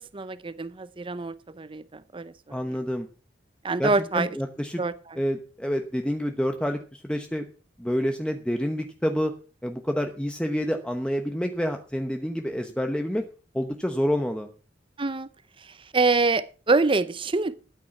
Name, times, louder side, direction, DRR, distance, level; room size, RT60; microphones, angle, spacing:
voice 1, 0.0-2.8 3.6-4.3 4.8-5.2 15.0-15.3 15.6-17.5, right 3 dB, 30° right, 15 dB, 0.6 m, -26 dB
voice 2, 2.5-3.1 3.8-4.8 5.1-7.5 7.8-9.3 9.6-13.2 13.5-14.5, equal, 5° left, 5 dB, 1.0 m, -28 dB
13.0 x 9.4 x 5.8 m, 0.37 s
head